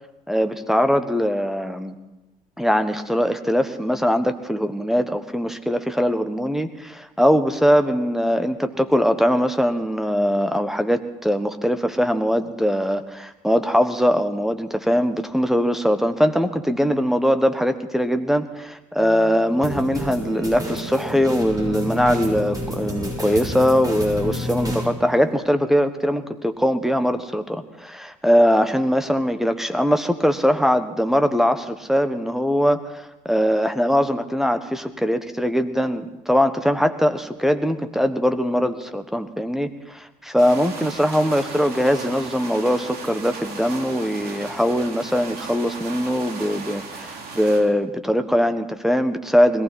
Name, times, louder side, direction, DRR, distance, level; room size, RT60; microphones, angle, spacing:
voice 1, 0.3-1.9 2.6-49.6, equal, ahead, 7 dB, 1.2 m, -21 dB
sound 1, 19.0-25.3, right 3 dB, 85° right, 5.1 m, -39 dB
sound 2, 19.6-24.9, equal, 20° right, 6.4 m, -30 dB
sound 3, 40.4-47.6, right 4 dB, 55° right, 2.9 m, -36 dB
21.0 x 15.5 x 4.1 m, 1.0 s
hypercardioid pair, 60°, 20 cm